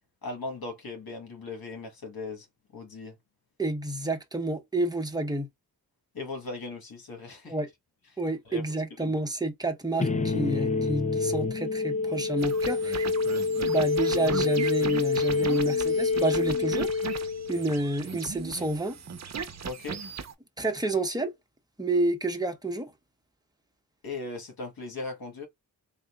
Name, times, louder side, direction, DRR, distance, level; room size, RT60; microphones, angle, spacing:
voice 1, 0.2-2.5 2.7-3.2 6.1-7.6 8.4-8.6 9.0-9.2 19.6-20.0 24.0-25.5, left 3 dB, 70° left, 1.5 m, -38 dB
voice 2, 3.6-5.5 7.5-7.7 8.2-13.1 13.6-17.2 17.5-19.0 20.6-21.3 21.8-22.9, right 2 dB, 10° right, 0.9 m, -29 dB
sound 1, 10.0-17.9, left 4 dB, 20° left, 0.5 m, -27 dB
sound 2, 12.4-20.3, right 6 dB, 45° right, 0.7 m, -37 dB
3.7 x 2.4 x 3.5 m
wide cardioid pair, 70°, 37 cm